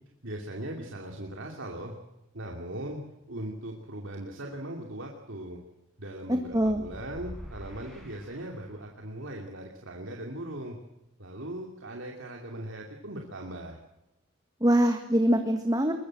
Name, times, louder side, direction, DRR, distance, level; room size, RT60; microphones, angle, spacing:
voice 1, 0.2-1.9 2.3-3.0 3.3-5.6 6.0-10.8 11.2-13.8, right 1 dB, 70° right, 1 dB, 2.7 m, -39 dB
voice 2, 6.3-6.8 14.6-15.9, equal, 20° right, 5 dB, 1.7 m, -24 dB
sound 1, 6.5-9.0, equal, ahead, 5.2 m, -46 dB
22.5 x 21.0 x 7.7 m, 0.91 s
head